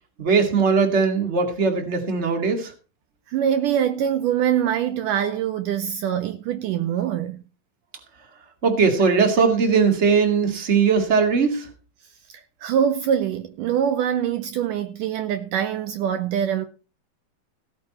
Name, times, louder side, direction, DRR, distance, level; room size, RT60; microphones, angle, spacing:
voice 1, 0.2-2.7 8.6-11.7, right 5 dB, 25° right, 1.9 m, -19 dB
voice 2, 3.3-7.4 12.3-16.7, right 9 dB, 75° right, 2.2 m, -24 dB
16.5 x 8.7 x 4.3 m
omnidirectional pair, 4.1 m